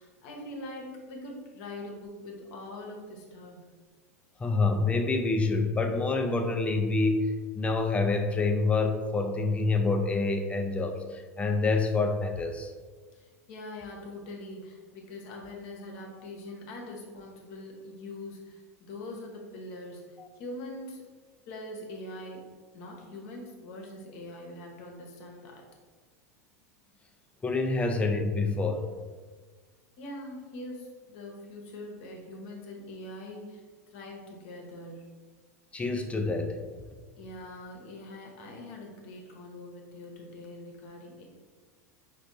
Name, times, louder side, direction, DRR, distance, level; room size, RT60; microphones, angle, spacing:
voice 1, 0.0-3.6 13.1-21.0 21.5-22.4 22.7-25.6 30.0-33.6 33.9-35.1 37.2-41.2, left 1 dB, 55° left, 0 dB, 0.9 m, -43 dB
voice 2, 4.4-12.7 20.2-20.3 27.4-28.9 35.7-36.6, left 3 dB, 15° left, 4 dB, 0.4 m, -27 dB
5.1 x 2.3 x 2.5 m, 1.4 s
figure-of-eight pair, 85°, 8 cm